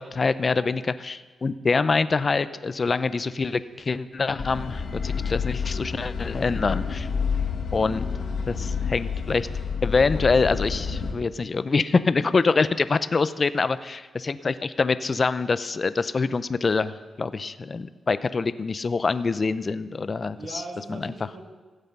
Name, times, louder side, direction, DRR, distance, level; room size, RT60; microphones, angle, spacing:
voice 1, 0.0-7.1 7.7-8.1 8.5-9.5 9.8-20.4 20.9-21.1, left 4 dB, 40° left, 14 dB, 0.5 m, -25 dB
sound 1, 4.4-11.1, left 6 dB, 65° left, 1.7 m, -29 dB
voice 2, 12.2-12.7 20.3-21.4, right 2 dB, 60° right, 1 dB, 2.3 m, -40 dB
15.5 x 8.1 x 5.4 m, 1.3 s
cardioid pair, 95°, 0 cm